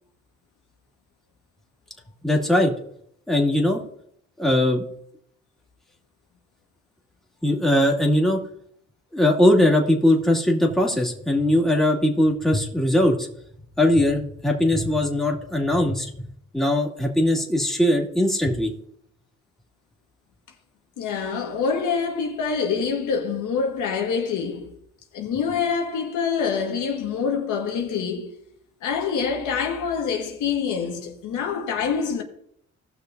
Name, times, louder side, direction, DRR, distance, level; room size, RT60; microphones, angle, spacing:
voice 1, 2.2-2.7 3.3-3.8 4.4-4.8 7.4-8.4 9.1-13.3 13.8-16.1 16.5-18.7, left 1 dB, ahead, 2.2 m, -20 dB
voice 2, 21.0-24.8 25.1-28.4 28.8-32.2, left 6 dB, 85° left, 1.7 m, -26 dB
18.0 x 6.2 x 2.7 m
cardioid pair, 90°, 30 cm